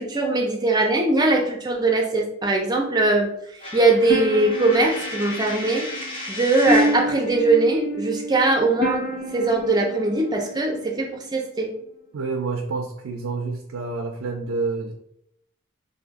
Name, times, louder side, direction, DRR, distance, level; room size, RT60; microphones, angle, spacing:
voice 1, 0.0-3.3 3.7-5.9 6.3-11.7, right 2 dB, 20° right, 1 dB, 0.5 m, -21 dB
Coin (dropping), 3.6-7.1, left 1 dB, 25° left, 0.7 m, -34 dB
sound 1, 4.1-11.2, equal, 75° left, 1.1 m, -29 dB
voice 2, 12.1-14.9, right 4 dB, 75° right, 3 dB, 0.4 m, -28 dB
2.6 x 2.4 x 3.9 m, 0.73 s
head